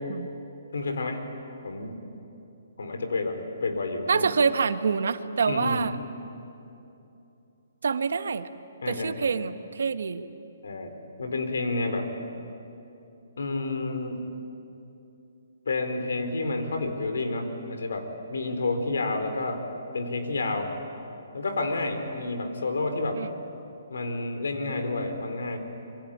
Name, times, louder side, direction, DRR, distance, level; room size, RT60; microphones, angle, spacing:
voice 1, 0.7-1.2 1.6-2.0 2.8-4.3 5.5-5.9 8.8-9.2 10.6-12.1 13.4-14.2 15.7-19.6 19.9-20.7 21.3-23.2 23.9-25.6, left 2 dB, 80° left, 6 dB, 4.3 m, -30 dB
voice 2, 4.1-6.0 7.8-8.5 8.9-10.2 23.1-23.3, right 5 dB, 70° right, 10 dB, 1.3 m, -26 dB
27.0 x 24.0 x 8.6 m, 2.8 s
hypercardioid pair, 175°, 0 cm